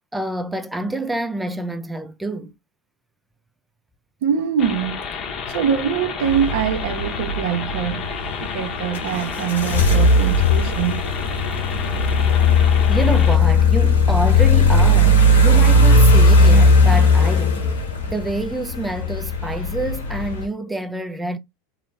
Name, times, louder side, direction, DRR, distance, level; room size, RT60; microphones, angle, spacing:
voice 1, 0.1-2.5 12.9-17.6 18.1-21.4, right 2 dB, 10° right, 0.3 m, -27 dB
voice 2, 4.2-5.0 5.5-8.1 8.4-11.0, right 8 dB, 65° right, 0.5 m, -23 dB
sound 1, 4.6-13.4, left 6 dB, 40° left, 0.7 m, -30 dB
sound 2, 6.2-20.4, left 2 dB, 85° left, 1.0 m, -17 dB
2.8 x 2.0 x 2.3 m
hypercardioid pair, 95°, 0 cm